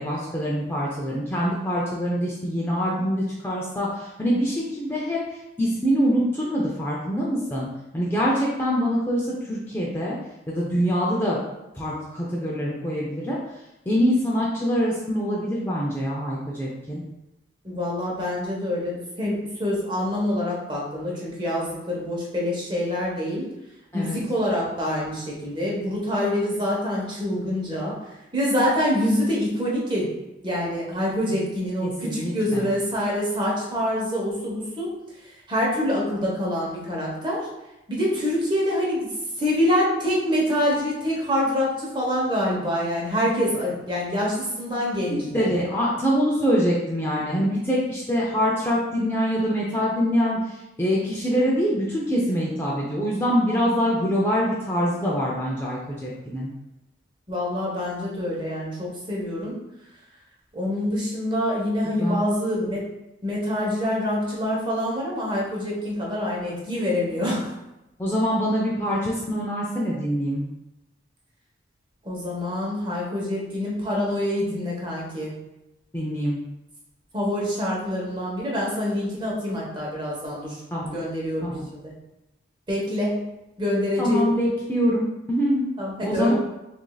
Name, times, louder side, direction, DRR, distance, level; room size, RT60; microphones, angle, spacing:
voice 1, 0.0-7.7 7.9-10.2 10.5-11.4 11.7-13.4 13.9-17.0 23.9-24.2 31.8-32.7 45.3-56.5 62.0-62.2 68.0-70.4 75.9-76.4 80.7-81.0 81.4-81.6 84.0-85.7 86.0-86.3, equal, 10° left, -5 dB, 0.5 m, -24 dB
voice 2, 17.6-23.5 23.9-27.9 28.3-30.1 30.4-34.9 35.5-37.5 37.9-45.5 57.3-59.5 60.5-62.8 63.2-67.6 72.0-75.3 77.1-80.6 80.9-81.9 82.7-83.2 83.6-84.3 85.8-86.3, left 1 dB, 25° right, -4 dB, 1.0 m, -26 dB
6.1 x 2.6 x 2.3 m, 0.94 s
head